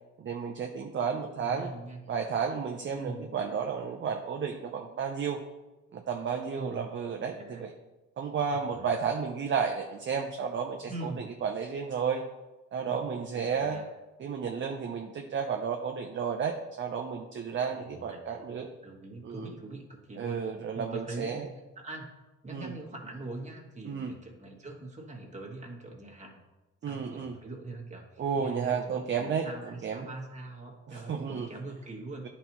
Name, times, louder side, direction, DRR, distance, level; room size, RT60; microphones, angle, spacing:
voice 1, 0.2-1.7 2.1-5.4 5.9-7.7 8.2-11.1 11.4-12.2 12.7-13.8 14.2-18.7 19.2-19.3 20.2-21.5 22.5-22.7 23.9-24.1 26.8-27.4 28.2-29.5 29.8-30.1 30.9-31.5, right 6 dB, 40° right, 3 dB, 0.6 m, -32 dB
voice 2, 1.4-2.2 2.9-3.3 6.5-7.7 8.5-8.8 10.8-11.4 13.3-13.9 17.7-20.4 20.7-22.1 22.4-26.4 26.8-32.3, right 2 dB, 25° right, 0 dB, 1.4 m, -42 dB
9.9 x 4.2 x 3.0 m, 1.1 s
cardioid pair, 90°, 30 cm